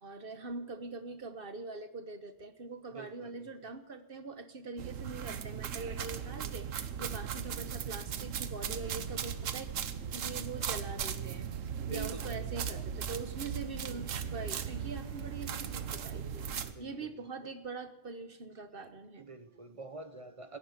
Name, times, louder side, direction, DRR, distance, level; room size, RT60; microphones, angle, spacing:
voice 1, 0.0-9.7 10.1-19.3, right 3 dB, 50° right, 10 dB, 1.3 m, -43 dB
voice 2, 2.9-3.5 6.9-7.1 11.8-13.0 16.6-17.1 17.4-17.5 18.7-18.9 19.2-20.6, right 4 dB, 30° right, 11 dB, 1.0 m, -47 dB
sound 1, 4.8-16.7, right 8 dB, 85° right, 1.3 m, -38 dB
Bowed string instrument, 13.7-18.1, equal, 20° left, 3.2 m, -59 dB
16.0 x 11.0 x 8.1 m, 0.95 s
omnidirectional pair, 1.3 m